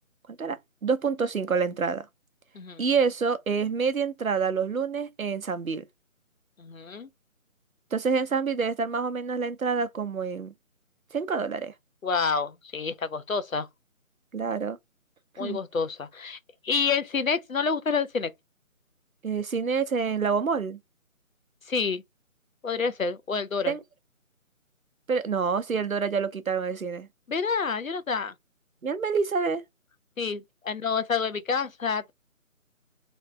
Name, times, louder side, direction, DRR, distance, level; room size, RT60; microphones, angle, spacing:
voice 1, 0.3-2.1 2.8-5.8 7.9-10.5 11.1-11.7 14.3-14.8 15.4-15.6 19.2-20.8 23.7-23.8 25.1-27.1 28.8-29.6, right 5 dB, 75° right, 0.8 m, -27 dB
voice 2, 6.6-7.1 12.0-13.7 15.4-16.4 16.6-18.3 21.7-22.0 22.6-23.7 27.3-28.3 30.2-32.1, left 5 dB, 70° left, 0.9 m, -28 dB
3.3 x 3.1 x 3.9 m
figure-of-eight pair, 155°, 42 cm